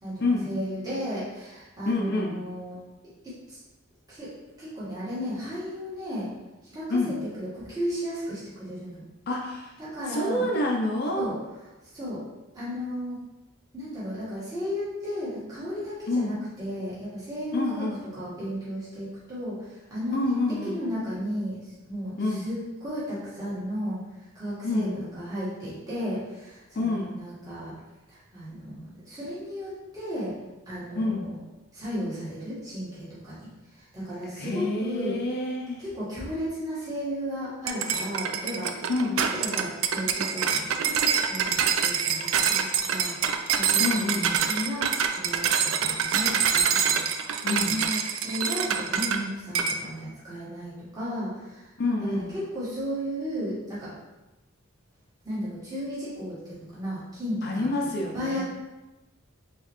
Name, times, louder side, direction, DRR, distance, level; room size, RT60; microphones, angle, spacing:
voice 1, 0.0-2.8 3.2-3.6 4.1-4.3 4.6-6.3 6.7-7.0 7.4-9.0 9.8-10.5 11.2-11.4 11.9-12.2 12.5-13.2 13.7-17.9 18.1-19.6 19.9-20.2 20.7-22.6 22.8-24.0 24.3-27.7 28.1-30.3 30.7-31.4 31.7-33.5 33.8-35.2 35.8-38.8 39.4-43.1 43.5-47.0 47.7-51.7 52.0-53.9 55.2-57.7 58.1-58.4, equal, 20° right, -11 dB, 1.5 m, -34 dB
voice 2, 1.9-2.4 6.9-7.1 9.3-9.7 10.1-11.3 16.1-16.3 17.5-18.0 20.1-20.8 22.2-22.4 24.6-24.9 26.7-27.2 30.9-31.3 34.3-35.8 38.9-39.2 43.8-44.4 47.4-47.8 51.8-52.3 57.4-58.4, left 2 dB, 50° left, 0 dB, 0.4 m, -27 dB
sound 1, 37.7-49.2 49.6-49.8, right 7 dB, 75° right, 0.3 m, -25 dB
3.9 x 3.1 x 3.0 m, 1.1 s
head